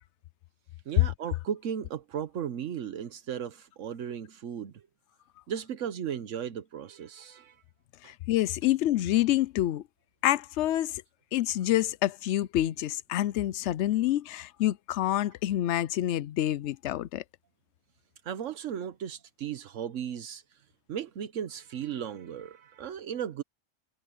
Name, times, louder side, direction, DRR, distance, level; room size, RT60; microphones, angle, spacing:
voice 1, 0.9-4.8 5.5-7.6 8.0-8.1 18.2-20.6 20.9-23.4, right 8 dB, 85° right, 1.2 m, -36 dB
voice 2, 8.0-9.8 10.2-11.0 11.3-17.2, left 13 dB, 70° left, 0.8 m, -27 dB
omnidirectional pair, 1.3 m